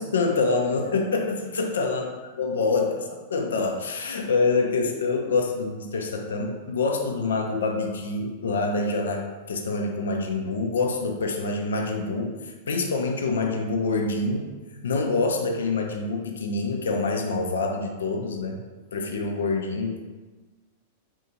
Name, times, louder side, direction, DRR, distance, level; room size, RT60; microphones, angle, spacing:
voice 1, 0.0-2.1 2.4-18.6 18.9-20.0, left 3 dB, 65° left, 2 dB, 0.3 m, -26 dB
2.6 x 2.4 x 2.7 m, 1.3 s
figure-of-eight pair, 95°, 0 cm